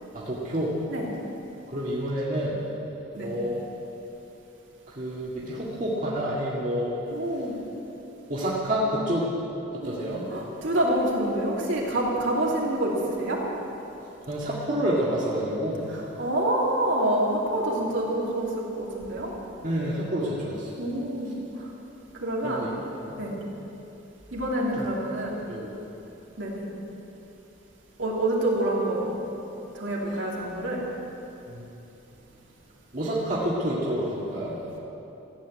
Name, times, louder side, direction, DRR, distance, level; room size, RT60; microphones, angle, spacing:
voice 1, 0.1-0.8 1.7-2.6 3.2-3.6 4.9-7.0 8.3-9.3 9.5-10.3 14.3-15.9 19.6-20.7 22.4-22.7 23.1-23.2 24.8-24.9 25.5-25.8 31.5-31.8 32.9-34.6, equal, 40° right, -7 dB, 2.0 m, -28 dB
voice 2, 7.1-7.5 9.8-10.0 10.3-13.4 15.9-19.3 20.2-20.3 20.8-21.3 21.6-21.7 22.2-22.7 23.2-23.4 24.3-25.4 26.4-26.6 28.0-29.2 29.7-30.9, right 1 dB, 70° right, -4 dB, 3.0 m, -27 dB
15.0 x 8.4 x 9.6 m, 3.0 s
head